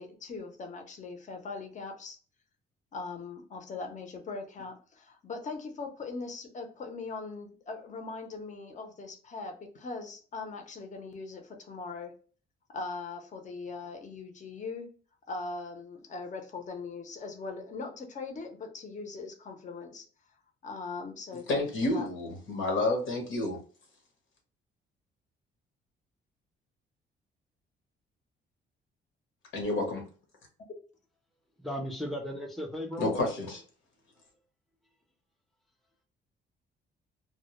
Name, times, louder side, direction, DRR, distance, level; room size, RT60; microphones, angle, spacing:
voice 1, 0.0-2.2 2.9-12.1 12.7-14.9 15.3-20.0 20.6-22.1, left 4 dB, 40° left, 4 dB, 0.7 m, -40 dB
voice 2, 21.5-23.6 29.5-30.0 33.0-33.6, left 2 dB, 80° left, 2 dB, 0.9 m, -29 dB
voice 3, 31.6-33.1, equal, ahead, 1 dB, 0.5 m, -36 dB
2.1 x 2.0 x 2.9 m, 0.41 s
cardioid pair, 90°, 20 cm